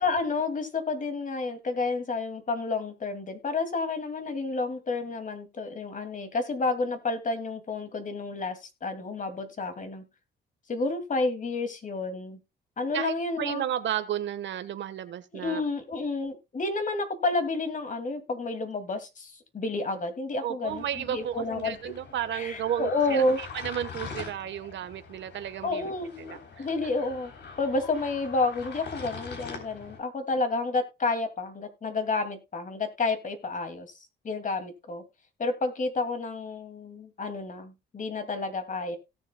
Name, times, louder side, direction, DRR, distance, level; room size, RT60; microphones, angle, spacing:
voice 1, 0.0-10.0 10.7-12.4 12.8-13.6 15.3-21.8 22.3-23.4 25.6-27.3 27.6-33.9 34.2-35.0 35.4-39.0, left 3 dB, 40° left, 2.3 m, -30 dB
voice 2, 12.9-15.6 20.4-25.9 26.2-26.7, right 10 dB, 65° right, 1.2 m, -33 dB
sound 1, 20.7-30.0, left 5 dB, 60° left, 3.4 m, -43 dB
17.5 x 7.1 x 2.2 m
cardioid pair, 90°, 20 cm